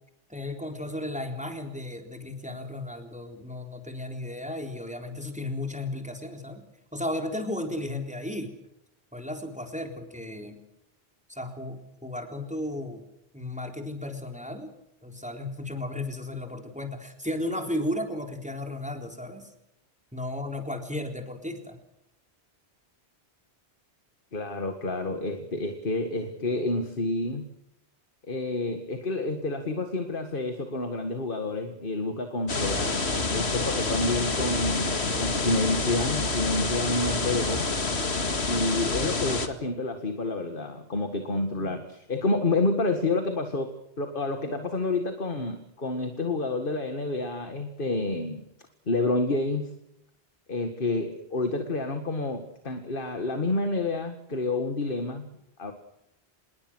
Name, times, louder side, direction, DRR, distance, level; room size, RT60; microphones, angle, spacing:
voice 1, 0.3-6.6 6.9-8.5 9.1-10.6 11.3-13.0 13.3-14.7 15.0-19.5 20.1-21.8, left 1 dB, 5° right, 4 dB, 3.8 m, -34 dB
voice 2, 24.3-27.5 28.3-33.0 33.3-37.7 38.5-48.4 48.9-49.7 50.5-55.3 55.6-55.7, left 2 dB, 50° left, 7 dB, 2.2 m, -29 dB
sound 1, 32.5-39.5, left 3 dB, 75° left, 2.4 m, -28 dB
26.5 x 22.0 x 6.3 m, 0.81 s
omnidirectional pair, 1.1 m